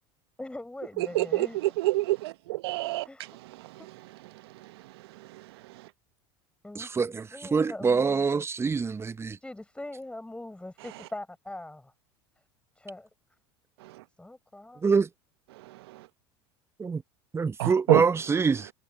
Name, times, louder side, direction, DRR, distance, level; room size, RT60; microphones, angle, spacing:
voice 1, 0.4-1.6 3.0-3.4 6.6-8.4 9.4-11.9 12.8-13.1 14.2-14.8, left 1 dB, 10° left, 7.2 m, -42 dB
voice 2, 1.0-3.1 4.6-4.7 5.2-5.4 13.8-14.0 15.7-16.1 17.6-18.0, right 19 dB, 70° right, 1.2 m, -28 dB
voice 3, 6.7-9.4 14.8-15.1 16.8-17.0 17.3-18.7, right 5 dB, 20° right, 0.8 m, -25 dB
hypercardioid pair, 75°, 14 cm